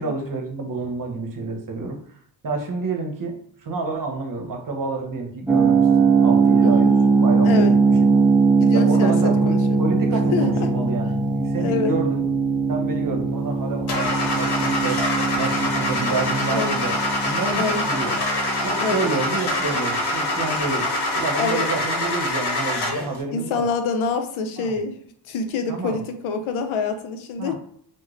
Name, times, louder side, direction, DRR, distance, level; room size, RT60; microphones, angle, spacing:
voice 1, 0.0-2.0 2.4-8.1 8.7-12.2 12.7-15.0 15.4-17.0 17.2-18.2 18.6-20.9 21.2-23.6 24.6-24.7 25.7-26.0 27.4-27.5, right 3 dB, 45° right, 3 dB, 0.9 m, -29 dB
sound 1, 5.5-20.2, right 4 dB, 5° right, 0.5 m, -20 dB
voice 2, 6.6-6.9 7.4-7.7 8.6-9.6 10.3-10.7 11.6-12.0 16.5-16.8 17.6-17.8 18.8-19.1 21.4-21.7 23.3-25.0 25.3-27.5, left 4 dB, 85° left, 7 dB, 0.6 m, -26 dB
Car / Engine starting, 13.9-23.2, left 1 dB, 55° left, 1.0 m, -25 dB
3.7 x 2.1 x 3.1 m, 0.62 s
cardioid pair, 70°, 47 cm